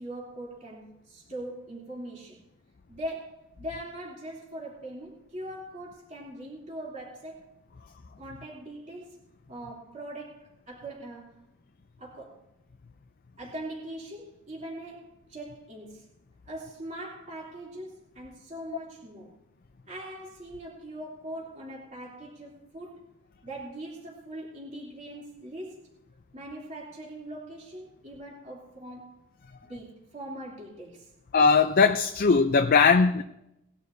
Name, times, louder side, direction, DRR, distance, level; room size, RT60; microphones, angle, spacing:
voice 1, 0.0-2.4 2.9-7.4 8.2-9.2 9.5-11.5 12.0-12.4 13.4-16.1 16.5-19.3 19.9-23.0 23.4-25.8 26.3-29.2 29.6-31.1, right 1 dB, 35° right, 3.1 m, -41 dB
voice 2, 31.3-33.2, left 5 dB, 45° left, 0.5 m, -20 dB
19.5 x 11.5 x 2.7 m
head